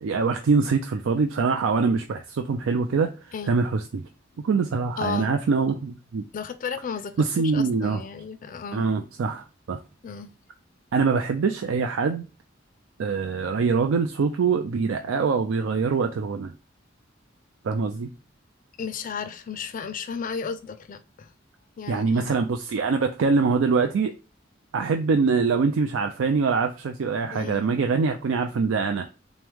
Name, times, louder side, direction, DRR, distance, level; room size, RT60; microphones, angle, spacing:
voice 1, 0.0-4.0 4.4-6.2 7.2-8.0 8.7-9.8 10.9-12.3 13.0-16.5 17.6-18.1 21.9-24.1 24.7-29.0, right 4 dB, 85° right, 0.4 m, -24 dB
voice 2, 5.0-5.3 6.3-8.9 10.0-10.3 18.8-21.3 21.8-22.3 27.3-27.7, left 6 dB, 45° left, 0.4 m, -34 dB
3.5 x 3.1 x 3.4 m
head